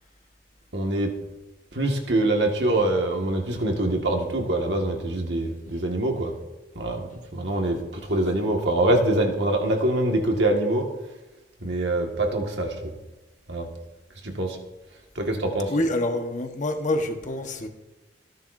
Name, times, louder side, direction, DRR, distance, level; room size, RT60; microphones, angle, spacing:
voice 1, 0.7-1.1 1.7-6.3 6.8-10.9 11.6-12.9 13.5-13.7 14.2-14.6 15.2-15.7, right 1 dB, 70° right, 2 dB, 1.9 m, -24 dB
voice 2, 15.7-17.7, left 1 dB, 45° left, 4 dB, 1.3 m, -26 dB
26.0 x 11.0 x 2.7 m, 1.1 s
head